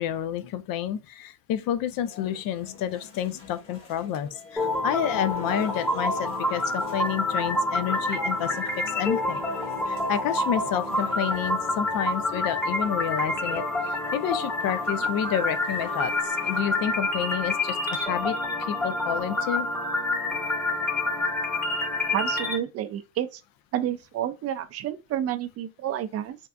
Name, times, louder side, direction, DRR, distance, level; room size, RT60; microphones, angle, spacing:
voice 1, 0.0-9.4 9.9-19.7, left 10 dB, 50° left, 0.5 m, -30 dB
sound 1, 2.0-16.6, left 3 dB, 30° left, 1.1 m, -46 dB
sound 2, 4.6-22.6, left 2 dB, 5° left, 0.9 m, -28 dB
voice 2, 22.1-23.4 23.7-26.4, right 11 dB, 35° right, 0.4 m, -30 dB
2.7 x 2.3 x 2.2 m
hypercardioid pair, 80°, 46 cm